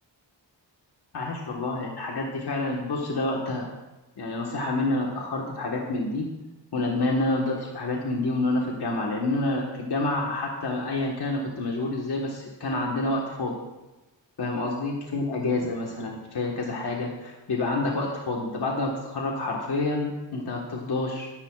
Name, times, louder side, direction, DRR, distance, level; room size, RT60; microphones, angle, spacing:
voice 1, 1.1-3.7 4.2-6.3 6.7-13.5 14.4-21.3, left 2 dB, 55° left, -1 dB, 1.5 m, -28 dB
20.5 x 11.0 x 2.4 m, 1.1 s
wide cardioid pair, 155°, 45 cm